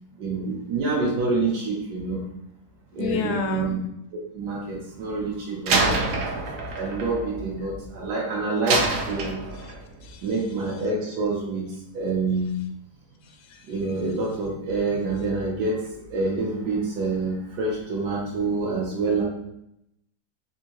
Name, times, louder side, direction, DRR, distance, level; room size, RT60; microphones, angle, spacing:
voice 1, 0.2-2.2 3.0-3.8 4.3-6.0 6.7-8.8 9.1-9.4 10.2-11.6 11.9-12.6 13.7-15.8 16.1-19.2, right 3 dB, 85° right, -3 dB, 1.3 m, -27 dB
voice 2, 3.0-3.7 9.6-9.7 10.0-10.3 13.5-13.6, left 4 dB, 85° left, 5 dB, 1.1 m, -29 dB
Slam, 5.7-8.1 8.7-9.9, right 3 dB, 65° right, 0.8 m, -26 dB
3.6 x 2.7 x 2.8 m, 0.80 s
omnidirectional pair, 1.7 m